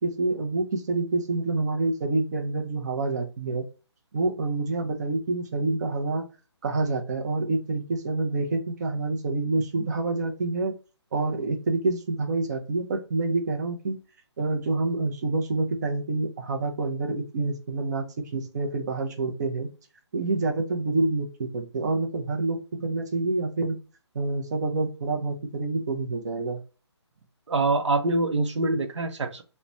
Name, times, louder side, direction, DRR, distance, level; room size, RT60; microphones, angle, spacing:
voice 1, 0.0-3.6 4.1-6.3 6.6-10.7 11.1-14.0 14.4-18.0 18.3-19.7 20.1-23.8 24.1-26.6, right 3 dB, 35° right, 4 dB, 0.5 m, -27 dB
voice 2, 27.5-29.4, right 2 dB, 90° right, 6 dB, 0.6 m, -24 dB
3.1 x 2.1 x 2.5 m, 0.33 s
hypercardioid pair, 165°, 15 cm